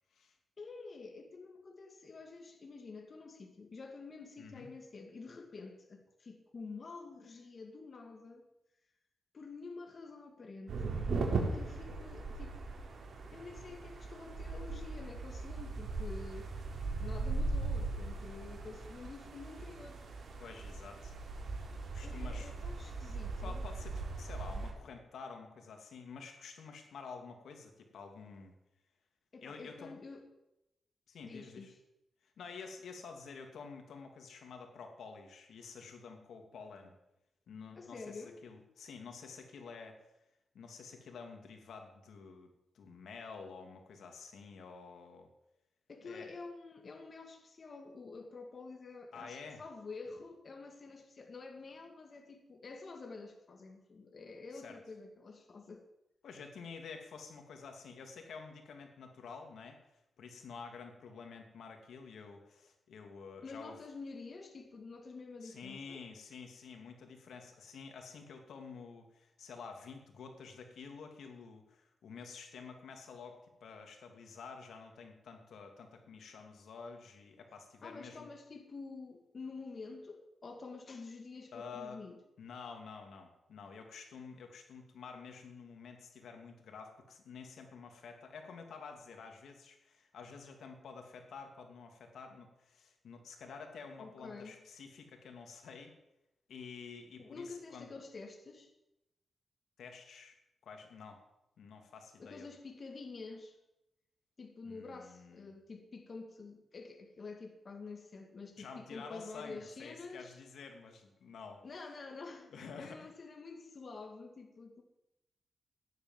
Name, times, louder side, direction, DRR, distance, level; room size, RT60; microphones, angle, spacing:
voice 1, 0.6-8.5 9.3-11.0 11.5-12.6 13.3-16.5 17.0-20.0 22.0-23.7 29.3-30.3 31.2-31.8 37.7-38.4 45.9-55.8 63.4-66.0 77.8-82.2 94.0-94.6 97.2-98.7 102.2-103.6 104.4-110.4 111.6-114.8, left 4 dB, 45° left, 2.3 m, -48 dB
voice 2, 4.4-4.7 20.4-21.1 21.6-21.7 21.9-22.5 23.4-28.5 29.4-29.9 31.1-31.7 32.2-36.9 37.5-40.0 40.5-45.3 46.0-46.4 49.1-49.6 54.5-54.8 56.2-63.8 65.4-78.3 81.5-82.0 82.4-95.9 96.5-97.9 99.8-100.4 100.6-101.2 101.6-102.5 104.6-105.5 108.6-111.6 112.5-113.1, left 5 dB, 85° left, 2.8 m, -50 dB
sound 1, 10.7-24.7, right 3 dB, 70° right, 4.3 m, -39 dB
16.5 x 10.5 x 7.6 m
wide cardioid pair, 125°, 0 cm